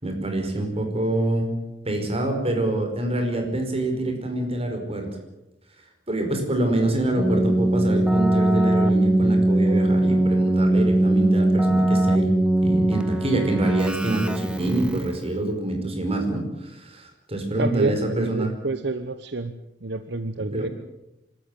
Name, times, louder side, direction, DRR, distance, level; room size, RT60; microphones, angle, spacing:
voice 1, 0.0-1.5 1.8-5.1 6.1-12.3 12.6-18.5 20.5-20.7, right 1 dB, 35° right, 4 dB, 5.2 m, -26 dB
Keyboard (musical), 7.2-15.3, right 1 dB, 5° right, 1.3 m, -21 dB
voice 2, 17.6-19.5 19.8-20.7, right 3 dB, 65° right, 10 dB, 1.1 m, -28 dB
26.0 x 13.5 x 9.1 m, 0.93 s
head